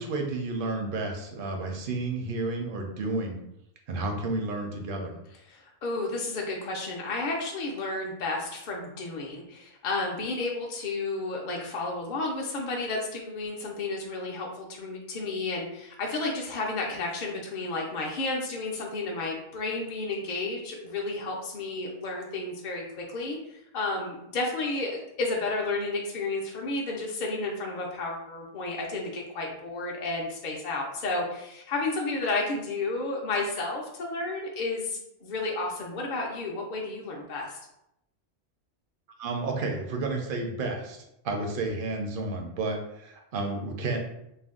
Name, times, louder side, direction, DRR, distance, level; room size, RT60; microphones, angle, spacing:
voice 1, 0.0-3.4 3.9-5.2 39.2-44.0, right 2 dB, 60° right, 2 dB, 0.6 m, -31 dB
voice 2, 5.5-37.6, left 3 dB, 65° left, -1 dB, 0.5 m, -32 dB
2.5 x 2.1 x 3.5 m, 0.82 s
omnidirectional pair, 1.3 m